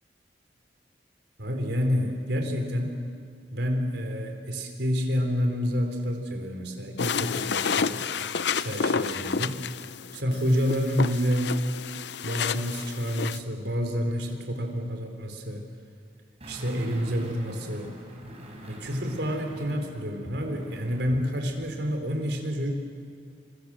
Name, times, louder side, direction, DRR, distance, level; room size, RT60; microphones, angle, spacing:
voice 1, 1.4-3.0 3.5-8.0 8.5-9.6 10.1-11.6 12.2-15.6 16.5-17.9 18.7-22.7, equal, 70° right, 4 dB, 4.2 m, -28 dB
sound 1, 7.0-13.4, left 6 dB, 70° left, 0.6 m, -30 dB
sound 2, 16.4-21.3 21.6-21.7, equal, 35° right, 5.7 m, -43 dB
28.0 x 26.0 x 7.6 m, 2.2 s
head